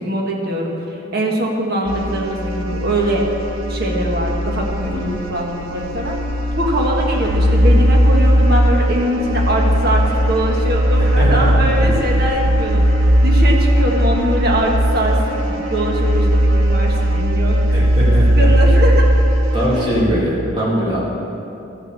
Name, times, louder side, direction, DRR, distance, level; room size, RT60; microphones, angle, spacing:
voice 1, 0.0-3.2 3.7-4.9 5.3-6.1 6.6-12.8 13.2-17.9 18.4-19.1, right 1 dB, 50° right, 0 dB, 1.6 m, -22 dB
sound 1, 1.9-20.0, equal, 80° right, 1.1 m, -17 dB
voice 2, 11.0-11.9 17.7-18.5 19.5-21.1, equal, 25° right, -7 dB, 2.8 m, -21 dB
13.0 x 6.9 x 6.8 m, 2.8 s
head